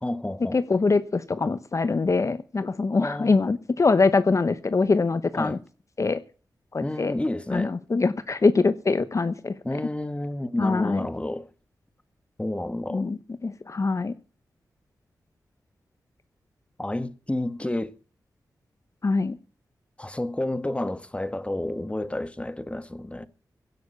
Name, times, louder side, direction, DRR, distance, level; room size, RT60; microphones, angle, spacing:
voice 1, 0.0-0.6 3.0-3.4 5.3-5.6 6.8-7.7 9.6-11.5 12.4-13.1 16.8-17.9 20.0-23.3, left 1 dB, 15° left, 1.5 m, -30 dB
voice 2, 0.5-5.6 6.0-6.2 6.7-7.1 7.5-9.8 10.6-11.1 12.9-14.1 19.0-19.4, left 3 dB, 45° left, 1.0 m, -23 dB
16.5 x 7.0 x 8.3 m
cardioid pair, 50°, 7 cm